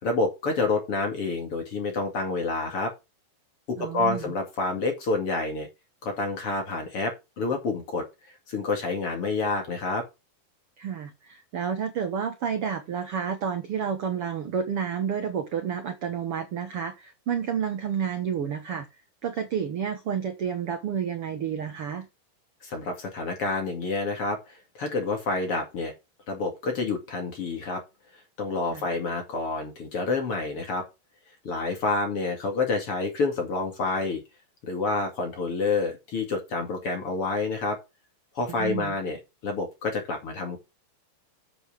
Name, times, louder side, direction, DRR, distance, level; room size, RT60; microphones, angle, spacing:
voice 1, 0.0-2.9 3.7-5.7 6.0-8.0 8.5-10.0 22.6-25.9 26.3-27.8 28.4-30.8 31.4-34.2 34.6-37.8 38.3-39.2 39.4-40.6, left 3 dB, 40° left, 2.7 m, -28 dB
voice 2, 3.8-4.3 10.8-18.9 19.2-22.1 28.7-28.8 38.5-38.9, right 7 dB, 65° right, 1.5 m, -30 dB
8.0 x 7.8 x 4.9 m
omnidirectional pair, 4.4 m